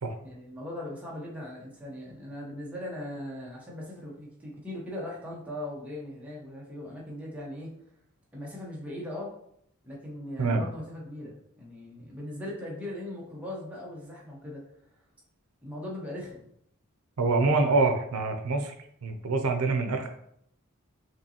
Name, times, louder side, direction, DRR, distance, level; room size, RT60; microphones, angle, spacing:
voice 1, 0.2-7.7 8.3-9.3 9.8-14.6 15.6-16.5 17.6-17.7, left 1 dB, 5° right, -5 dB, 1.1 m, -39 dB
voice 2, 17.2-18.7 19.0-20.1, right 3 dB, 85° right, 5 dB, 0.5 m, -25 dB
5.4 x 3.0 x 2.8 m, 0.72 s
head